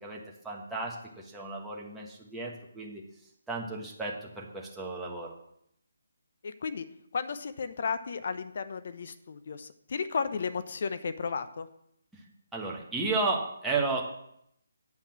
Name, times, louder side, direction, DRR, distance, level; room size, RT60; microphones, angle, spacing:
voice 1, 0.0-3.0 3.5-5.3 12.1-12.2 12.5-14.1, right 3 dB, 5° right, -4 dB, 1.4 m, -33 dB
voice 2, 6.4-6.9 7.1-11.7, left 5 dB, 50° left, 11 dB, 0.9 m, -34 dB
9.0 x 5.7 x 7.5 m, 0.73 s
figure-of-eight pair, 150°, 0 cm